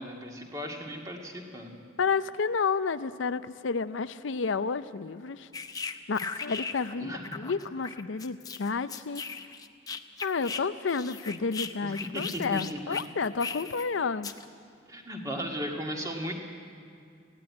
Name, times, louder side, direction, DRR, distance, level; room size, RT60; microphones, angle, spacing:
voice 1, 0.0-1.7 7.0-7.2 11.8-13.0 14.9-16.3, equal, 20° right, 1 dB, 1.9 m, -36 dB
voice 2, 2.0-5.5 6.1-9.2 10.2-14.3, left 5 dB, 90° left, 13 dB, 0.6 m, -30 dB
sound 1, 5.5-7.0 7.2-10.6 10.9-13.9 14.2-14.5, left 5 dB, 20° left, 0.6 m, -38 dB
19.0 x 15.5 x 9.6 m, 2.3 s
head